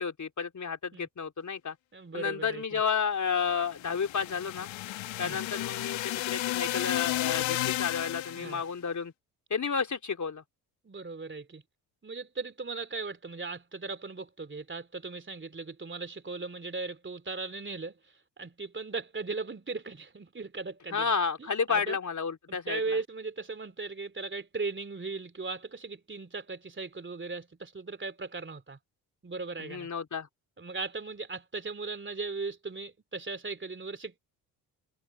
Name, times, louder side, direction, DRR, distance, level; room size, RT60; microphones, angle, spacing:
voice 1, 0.0-1.8 2.1-4.7 5.2-9.1 9.5-10.4 20.9-22.8 29.6-30.3, left 6 dB, 35° left, 3.4 m, -31 dB
voice 2, 1.9-2.8 5.2-5.4 8.4-8.6 10.8-11.6 12.0-21.1 21.4-22.0 22.5-28.8 29.2-29.9 30.6-34.2, right 3 dB, 25° right, 3.3 m, -38 dB
sound 1, 3.6-8.6, left 16 dB, 65° left, 2.0 m, -32 dB
hypercardioid pair, 55°, 49 cm